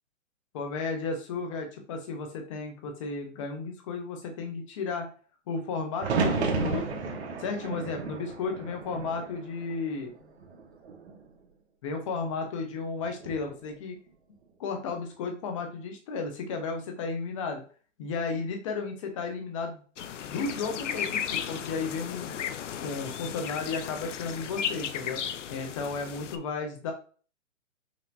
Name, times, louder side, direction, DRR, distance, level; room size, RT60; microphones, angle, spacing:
voice 1, 0.5-5.1 5.5-7.0 7.4-10.1 11.8-14.0 14.6-17.6 18.0-19.8 20.3-22.4 22.8-25.2 25.5-26.9, left 4 dB, 25° left, 4 dB, 0.8 m, -33 dB
sound 1, 6.0-10.0 10.4-11.2 13.0-13.5, right 4 dB, 55° right, 0.9 m, -32 dB
sound 2, 20.0-26.4, left 8 dB, 65° left, 0.6 m, -35 dB
6.0 x 2.8 x 2.6 m, 0.39 s
hypercardioid pair, 155°, 40 cm